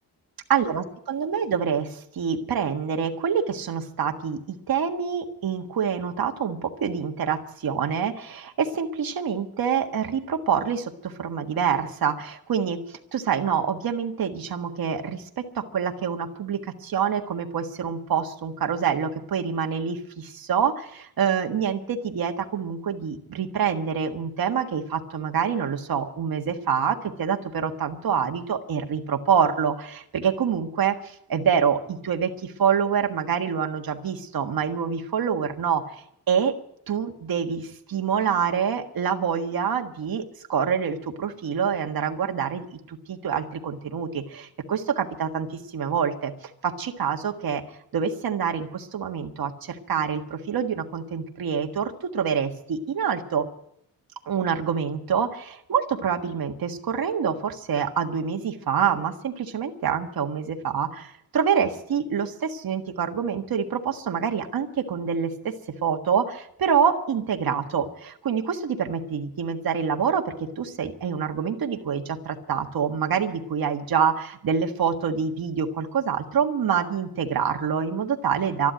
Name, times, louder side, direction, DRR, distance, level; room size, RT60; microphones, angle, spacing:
voice 1, 0.5-12.8 13.1-35.8 36.3-36.5 36.9-40.2 40.5-46.3 46.6-47.6 47.9-53.5 54.2-65.6 65.8-78.7, right 7 dB, 60° right, 4 dB, 1.6 m, -26 dB
13.0 x 11.5 x 9.0 m, 0.71 s
wide cardioid pair, 115°, 40 cm